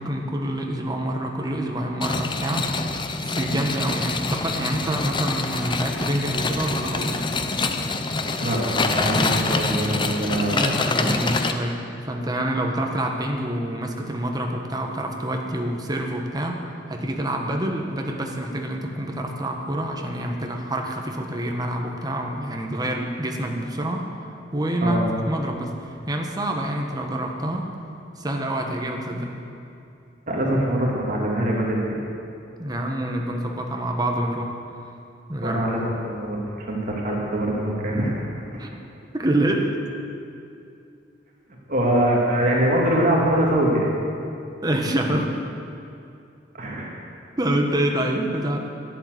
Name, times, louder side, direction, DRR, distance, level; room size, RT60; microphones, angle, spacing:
voice 1, 0.0-2.7 3.2-7.3 10.5-24.1 24.5-25.8 26.1-27.7 28.2-29.3 32.6-34.6 35.3-35.7 38.6-38.7 39.1-39.8 44.6-45.5 47.4-48.6, right 1 dB, 20° right, 2 dB, 1.3 m, -27 dB
sound 1, 2.0-11.5, left 3 dB, 25° left, 0.7 m, -26 dB
voice 2, 8.4-10.7 11.0-11.2 24.8-25.1 30.3-32.0 35.4-38.2 38.5-38.6 41.7-43.9 46.5-46.9, right 1 dB, 45° right, -2 dB, 2.3 m, -23 dB
12.0 x 11.0 x 7.8 m, 2.6 s
head